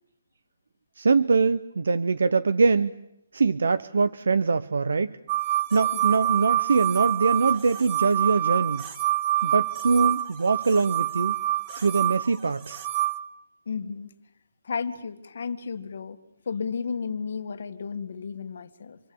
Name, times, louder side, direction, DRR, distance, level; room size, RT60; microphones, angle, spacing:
voice 1, 1.0-3.0 3.3-5.2 5.7-8.8 9.4-11.3 11.7-12.9, right 4 dB, 85° right, 12 dB, 0.9 m, -23 dB
sound 1, 5.3-13.2, right 15 dB, 20° right, 1.5 m, -26 dB
voice 2, 5.9-6.4 13.7-14.1 14.6-16.2 16.5-19.0, left 5 dB, 60° left, 8 dB, 2.2 m, -33 dB
27.5 x 22.5 x 8.8 m, 0.83 s
hypercardioid pair, 170°, 0 cm